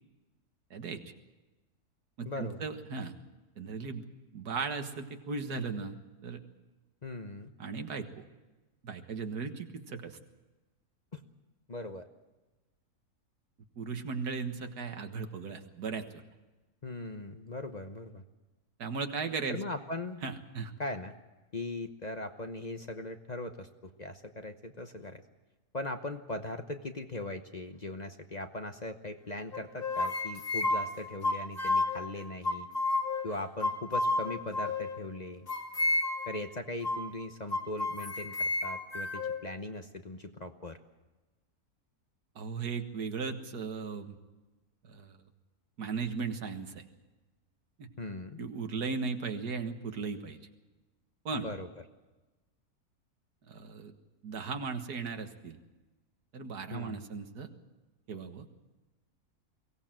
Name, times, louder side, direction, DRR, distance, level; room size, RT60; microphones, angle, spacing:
voice 1, 0.7-1.1 2.2-3.1 3.6-4.0 4.3-6.0 6.2-6.4 7.6-8.1 8.8-10.2 13.8-16.2 18.8-19.6 20.2-20.7 42.4-44.2 44.8-45.2 45.8-46.8 47.8-47.9 48.4-50.4 51.3-51.5 53.5-53.9 54.2-55.6 56.3-57.5 58.1-58.5, right 5 dB, 85° right, 7 dB, 2.0 m, -37 dB
voice 2, 2.2-2.6 7.0-7.5 11.1-11.2 11.7-12.1 16.8-18.2 19.5-20.2 20.8-21.1 21.5-25.2 25.7-32.7 33.2-35.5 36.3-40.8 48.0-48.4 51.3-51.7 56.7-57.1, left 2 dB, 30° left, 7 dB, 0.9 m, -39 dB
sound 1, 29.5-32.0 32.4-33.3 33.6-35.0 35.5-36.4 36.8-37.1 37.5-39.4, left 2 dB, 55° left, 2.4 m, -31 dB
22.5 x 17.5 x 7.6 m, 1.1 s
omnidirectional pair, 1.6 m